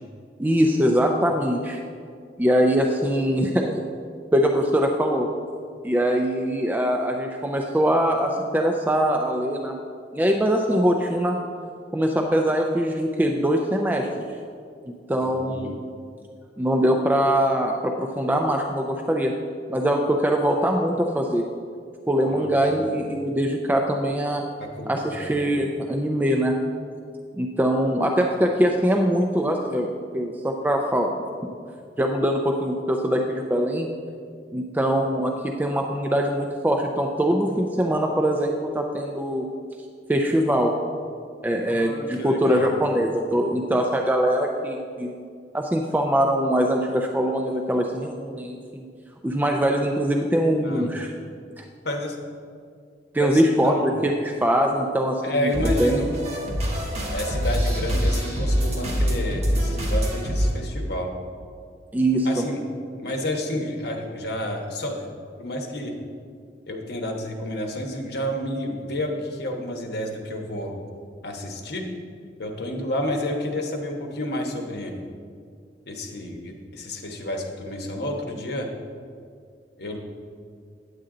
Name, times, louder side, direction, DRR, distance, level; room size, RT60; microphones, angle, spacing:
voice 1, 0.4-1.8 2.4-3.8 4.3-5.3 5.8-9.7 10.1-11.4 11.9-14.2 14.9-15.7 16.6-19.3 19.7-21.4 22.1-24.4 24.9-26.6 27.4-31.1 32.0-33.9 34.5-39.5 40.1-40.7 41.4-45.1 45.5-48.9 49.2-51.1 53.1-55.5 55.8-56.1 61.9-62.4, equal, 10° right, 2 dB, 0.4 m, -22 dB
voice 2, 15.2-15.7 22.3-22.8 24.6-25.3 41.7-42.7 50.6-50.9 51.8-52.2 53.2-53.9 55.2-56.1 57.1-61.1 62.2-62.6 63.0-65.9 66.7-70.7 71.2-71.9 72.4-74.9 75.9-78.7 79.8-80.0, left 1 dB, 65° left, 2 dB, 1.1 m, -30 dB
sound 1, 55.5-60.5, equal, 40° right, 1.4 m, -24 dB
9.5 x 7.7 x 3.8 m, 2.2 s
head